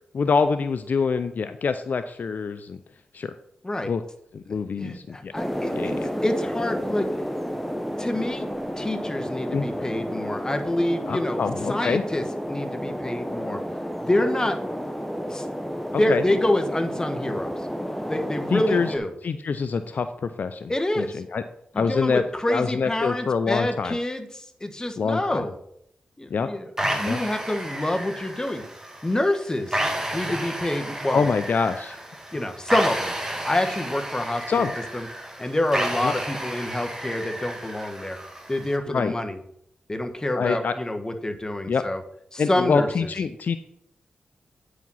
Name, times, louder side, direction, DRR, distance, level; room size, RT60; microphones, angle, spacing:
voice 1, 0.1-2.8 3.1-3.3 3.9-4.0 4.3-5.3 5.8-6.1 9.5-9.7 11.1-12.0 16.1-16.2 18.5-18.9 19.2-21.4 21.7-22.2 22.5-24.0 25.0-25.4 26.3-26.5 27.0-27.2 31.1-32.0 34.5-34.7 36.0-36.1 38.9-39.1 40.3-40.7 41.7-41.8 42.4-43.6, left 5 dB, 65° left, 10 dB, 0.5 m, -25 dB
voice 2, 4.8-7.1 8.0-8.5 8.8-11.4 11.7-13.6 14.0-14.6 15.3-15.4 15.9-17.5 18.1-19.1 20.7-21.2 21.7-25.5 26.2-28.6 29.0-29.8 30.1-31.3 32.3-33.1 33.4-34.6 34.9-35.1 35.4-38.2 38.5-39.4 39.9-42.0 42.3-43.1, left 1 dB, 20° left, 7 dB, 1.3 m, -27 dB
sound 1, 5.3-19.0, equal, 5° left, 1.1 m, -31 dB
sound 2, 26.8-38.8, right 1 dB, 15° right, 1.9 m, -32 dB
9.1 x 5.0 x 5.6 m, 0.73 s
cardioid pair, 60°, 3 cm